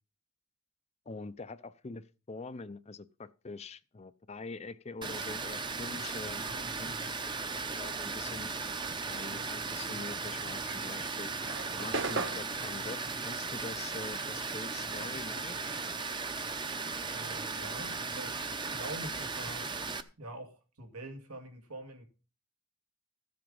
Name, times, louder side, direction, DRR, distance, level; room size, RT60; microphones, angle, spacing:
voice 1, 1.1-6.4 6.8-8.5 9.1-11.3 11.7-15.8 17.6-17.7, left 3 dB, 30° left, 0.5 m, -44 dB
Water, 5.0-20.0, right 4 dB, 20° right, 0.7 m, -37 dB
voice 2, 6.4-7.1 17.1-18.3 18.7-19.7 20.2-22.0, right 1 dB, 90° right, 2.3 m, -45 dB
sound 1, 10.5-15.2 15.5-17.5, right 3 dB, 55° right, 1.2 m, -39 dB
14.5 x 7.8 x 5.4 m
head